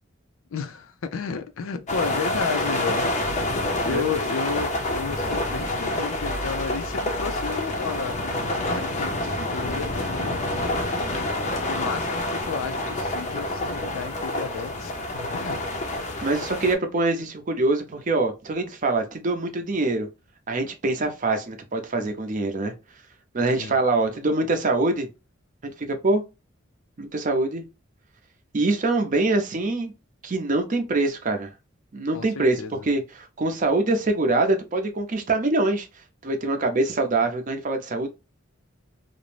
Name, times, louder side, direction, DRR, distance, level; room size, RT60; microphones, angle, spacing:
voice 1, 0.5-8.2 8.8-10.6 11.7-15.6 23.6-23.8 32.1-32.9, left 6 dB, 90° left, 0.4 m, -32 dB
sound 1, 1.9-16.7, left 1 dB, 35° left, 0.5 m, -27 dB
voice 2, 16.2-20.1 20.5-22.7 23.3-25.1 25.6-26.2 27.0-27.6 28.5-29.9 30.2-31.5 31.9-32.6 32.8-35.9 36.2-38.1, right 2 dB, 40° right, 0.5 m, -24 dB
2.5 x 2.0 x 3.1 m
head